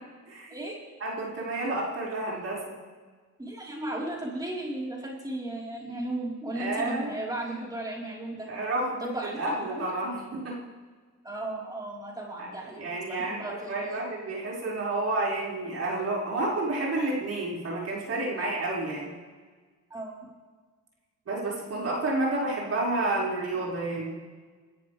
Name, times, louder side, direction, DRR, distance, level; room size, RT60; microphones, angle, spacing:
voice 1, 1.0-2.8 6.5-7.1 8.5-10.6 12.4-12.5 12.8-19.1 21.3-24.1, right 2 dB, 55° right, -5 dB, 5.5 m, -30 dB
voice 2, 3.4-8.5 9.0-10.0 11.2-14.0 18.3-18.5 19.9-20.3, right 1 dB, 15° right, -4 dB, 4.2 m, -35 dB
26.0 x 14.0 x 3.4 m, 1.5 s
cardioid pair, 90°, 30 cm